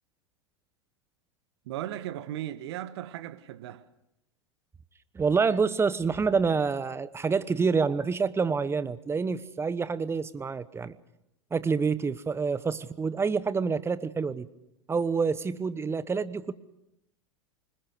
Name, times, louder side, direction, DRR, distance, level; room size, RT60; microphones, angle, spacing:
voice 1, 1.6-3.8, right 12 dB, 60° right, 1.5 m, -37 dB
voice 2, 5.1-11.0 11.5-14.5 14.9-16.5, right 5 dB, 15° right, 1.2 m, -27 dB
26.0 x 20.5 x 6.4 m
figure-of-eight pair, 90°, 15 cm